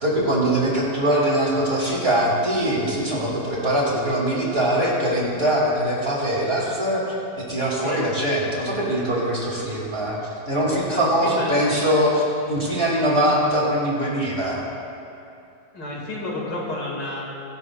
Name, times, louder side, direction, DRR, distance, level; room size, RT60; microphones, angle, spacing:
voice 1, 0.0-7.0 7.5-10.2 10.5-14.6, right 1 dB, 35° right, -4 dB, 2.9 m, -22 dB
voice 2, 10.9-11.6 15.7-17.2, left 2 dB, 85° left, -3 dB, 3.0 m, -31 dB
23.5 x 11.0 x 2.5 m, 2.8 s
omnidirectional pair, 1.9 m